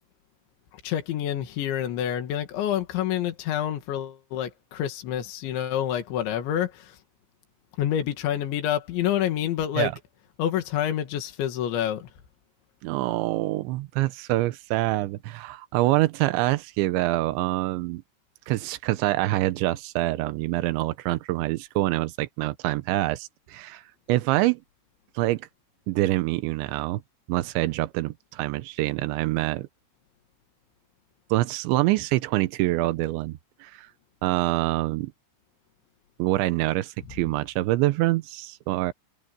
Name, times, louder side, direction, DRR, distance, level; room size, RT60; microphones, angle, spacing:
voice 1, 0.7-7.0 7.8-9.9 10.4-12.1, left 10 dB, 80° left, 4.4 m, -27 dB
voice 2, 12.8-18.0 18.5-23.8 24.1-24.6 25.2-25.5 25.9-27.0 27.3-29.7 31.3-33.9 34.2-35.1 36.2-38.9, right 18 dB, 90° right, 3.2 m, -25 dB
omnidirectional pair, 5.2 m